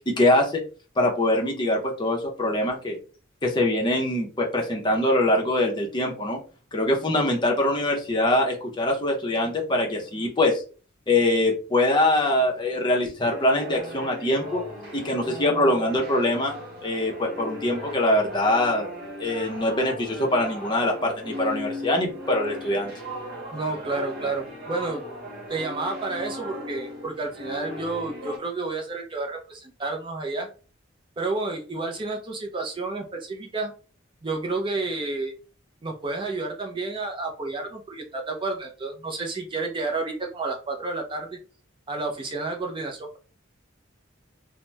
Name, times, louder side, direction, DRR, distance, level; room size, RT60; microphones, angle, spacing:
voice 1, 0.1-0.6 1.0-3.0 3.4-6.4 6.7-10.6 11.1-14.6 14.9-16.5 16.8-18.9 19.2-22.9, left 1 dB, 25° left, 0 dB, 0.6 m, -23 dB
sound 1, 13.2-28.4, equal, 50° right, 0.7 m, -37 dB
voice 2, 23.5-25.0 25.5-30.5 31.2-33.7 34.2-35.3 35.8-41.4 41.9-43.2, right 3 dB, 25° right, 2 dB, 0.4 m, -30 dB
2.8 x 2.0 x 3.3 m, 0.37 s
head